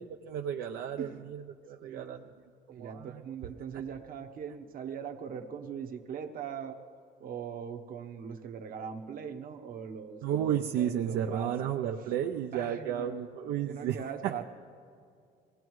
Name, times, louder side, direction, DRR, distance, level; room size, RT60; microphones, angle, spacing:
voice 1, 0.0-2.3 2.8-3.2 10.2-14.4, right 9 dB, 85° right, 4 dB, 0.6 m, -33 dB
voice 2, 1.8-2.3 2.7-6.8 7.2-11.8 12.5-13.2 13.6-14.4, right 7 dB, 55° right, 5 dB, 1.0 m, -41 dB
23.0 x 17.5 x 3.1 m, 2.3 s
cardioid pair, 110°, 17 cm